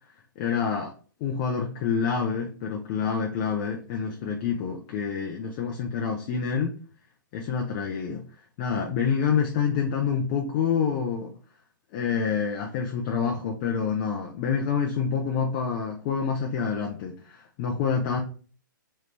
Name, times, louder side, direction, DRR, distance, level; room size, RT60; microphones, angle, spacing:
voice 1, 0.4-0.9 1.2-6.7 7.3-8.2 8.6-11.3 11.9-18.2, left 6 dB, 30° left, 0.6 m, -27 dB
3.7 x 3.1 x 3.3 m
figure-of-eight pair, 120°, 11 cm